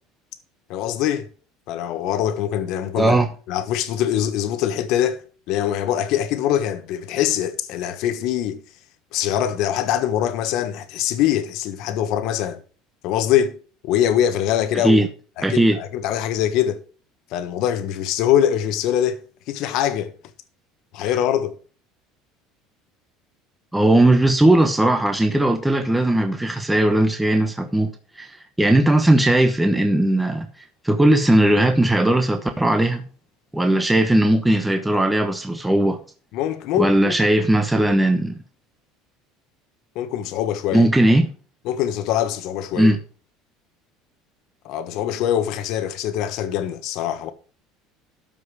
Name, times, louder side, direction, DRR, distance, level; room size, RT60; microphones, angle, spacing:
voice 1, 0.7-1.3 1.7-3.1 3.5-5.2 5.5-8.6 9.1-12.6 13.0-13.5 13.8-15.0 15.4-16.8 17.3-19.2 19.5-20.1 20.9-21.6 36.3-37.1 39.9-40.9 41.6-42.9 44.6-47.3, left 10 dB, 65° left, 1.3 m, -23 dB
voice 2, 3.0-3.3 14.7-15.1 15.4-15.8 23.7-27.9 28.2-30.5 30.8-33.1 33.5-36.0 36.8-38.4 40.7-41.3 42.8-43.0, right 1 dB, 5° right, 1.0 m, -18 dB
13.0 x 5.4 x 4.9 m
supercardioid pair, 125°, 0 cm